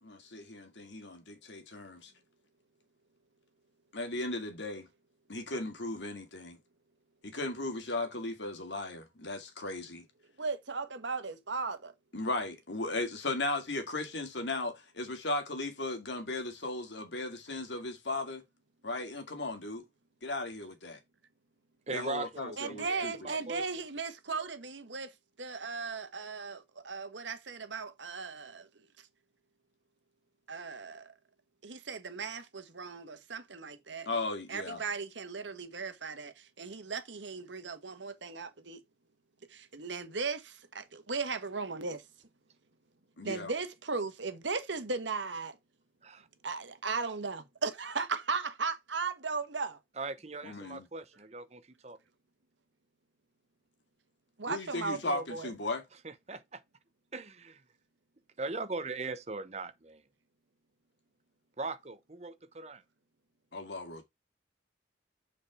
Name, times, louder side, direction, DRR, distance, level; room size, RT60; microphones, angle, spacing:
voice 1, 0.0-2.1 3.9-4.9 5.3-6.6 7.2-10.1 12.1-18.4 18.8-19.8 20.2-21.0 21.9-23.3 34.1-34.8 43.2-43.5 50.4-50.8 54.5-55.8 63.5-64.1, left 2 dB, 80° left, 2.2 m, -36 dB
voice 2, 10.4-11.9 22.6-25.1 25.4-28.7 30.5-31.1 31.6-34.1 34.5-38.8 39.5-42.0 43.2-45.6 46.4-49.8 54.4-55.5, right 4 dB, 90° right, 1.4 m, -37 dB
voice 3, 21.9-23.7 46.0-46.3 50.0-52.0 56.0-56.6 57.1-57.6 58.4-60.0 61.6-62.8, right 3 dB, 35° right, 0.9 m, -40 dB
7.2 x 5.1 x 4.7 m
head